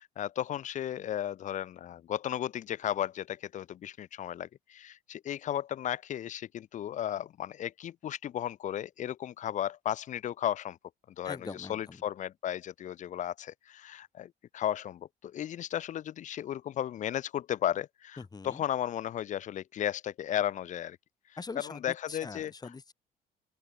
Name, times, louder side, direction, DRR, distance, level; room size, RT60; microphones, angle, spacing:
voice 1, 0.0-10.8 11.2-21.0 21.6-22.5, left 11 dB, 45° left, 0.6 m, -35 dB
voice 2, 11.2-12.0 18.2-18.6 21.4-22.9, left 4 dB, 25° left, 5.1 m, -43 dB
open air
cardioid pair, 110°, 17 cm